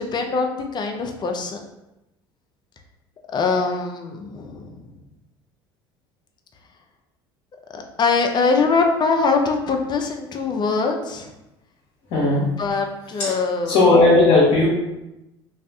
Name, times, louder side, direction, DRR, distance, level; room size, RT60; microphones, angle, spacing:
voice 1, 0.0-1.6 3.3-4.7 7.7-11.3 12.6-13.8, left 4 dB, 35° left, 4 dB, 0.5 m, -22 dB
voice 2, 12.1-12.5 13.2-13.3 13.7-14.7, left 2 dB, 60° left, -5 dB, 0.9 m, -15 dB
2.5 x 2.4 x 3.4 m, 0.95 s
hypercardioid pair, 75°, 13 cm